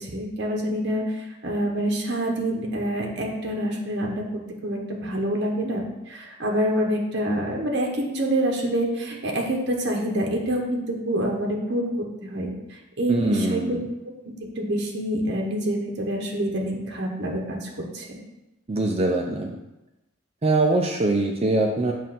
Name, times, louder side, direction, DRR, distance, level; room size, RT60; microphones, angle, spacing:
voice 1, 0.0-13.8 14.0-18.2, right 1 dB, 55° right, 0 dB, 1.0 m, -27 dB
voice 2, 13.1-13.8 18.7-19.6 20.4-21.9, right 2 dB, 30° right, 2 dB, 0.4 m, -23 dB
7.2 x 2.5 x 5.7 m, 0.98 s
head